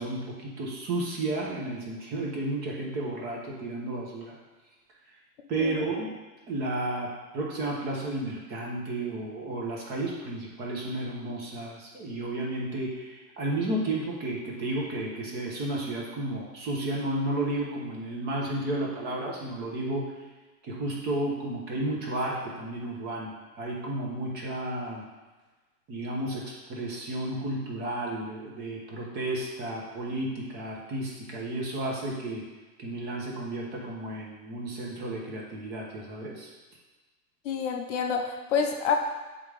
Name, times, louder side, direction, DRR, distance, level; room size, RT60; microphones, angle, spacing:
voice 1, 0.0-4.4 5.5-6.1 6.5-20.1 20.6-25.0 25.9-32.5 32.8-36.5, right 1 dB, 20° right, -2 dB, 0.9 m, -32 dB
voice 2, 37.4-39.0, left 6 dB, 50° left, 3 dB, 0.7 m, -28 dB
7.9 x 3.7 x 3.4 m, 1.2 s
hypercardioid pair, 150°, 47 cm